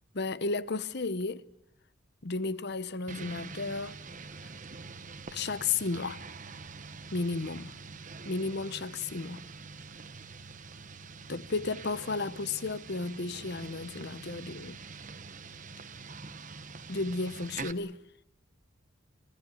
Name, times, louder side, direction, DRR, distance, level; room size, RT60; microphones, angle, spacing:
voice 1, 0.1-1.4 2.2-4.0 5.3-6.2 7.1-7.7 8.2-9.4 11.3-14.8 16.9-18.0, left 3 dB, 50° left, 0.8 m, -33 dB
sound 1, 3.1-17.7, right 4 dB, 35° right, 1.0 m, -45 dB
24.5 x 17.5 x 9.8 m
head